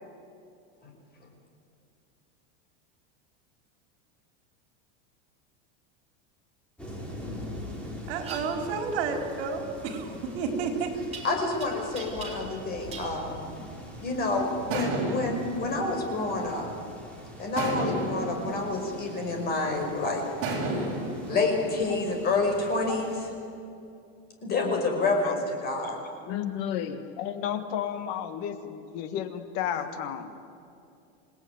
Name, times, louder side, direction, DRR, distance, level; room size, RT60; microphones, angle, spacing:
sound 1, 6.8-23.2, left 1 dB, 5° left, 4.6 m, -44 dB
voice 1, 8.1-10.9, right 5 dB, 65° right, 4 dB, 4.8 m, -31 dB
sound 2, 8.2-8.4 11.1-11.7 12.0-12.6 12.9-13.1, right 5 dB, 20° right, 3.9 m, -41 dB
voice 2, 11.2-13.4 14.0-16.7 17.4-20.3 20.7-20.9 21.3-23.3 24.4-26.0, left 3 dB, 30° left, 3 dB, 5.4 m, -28 dB
sound 3, 13.5-14.1 14.7-17.0 17.6-19.8 20.4-22.7, right 2 dB, 40° right, 7.9 m, -33 dB
voice 3, 24.6-25.4 26.3-30.4, left 9 dB, 55° left, 9 dB, 1.6 m, -33 dB
28.0 x 18.5 x 9.5 m, 2.6 s
supercardioid pair, 160°, 33 cm